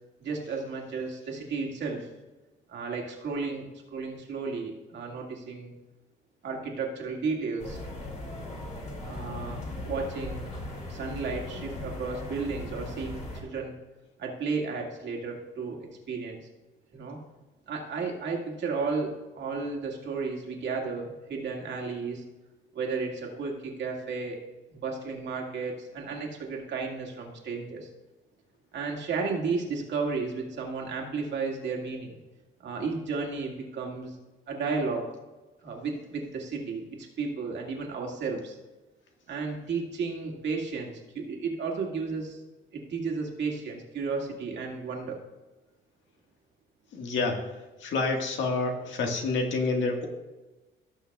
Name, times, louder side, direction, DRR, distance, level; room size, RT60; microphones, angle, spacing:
voice 1, 0.2-2.1 2.7-5.7 6.4-7.8 9.0-10.5 10.9-13.7 14.2-16.4 16.9-17.2 17.7-22.2 22.7-24.4 24.7-27.9 28.7-32.1 32.6-34.2 34.5-35.0 35.6-38.6 39.3-42.4 42.7-45.2, right 4 dB, 60° right, 0 dB, 2.1 m, -33 dB
sound 1, 7.6-13.4, left 2 dB, 35° left, 2.4 m, -38 dB
voice 2, 46.9-47.4 47.8-50.1, left 3 dB, 65° left, 3 dB, 1.7 m, -28 dB
18.0 x 6.4 x 2.3 m, 1.1 s
cardioid pair, 135°, 21 cm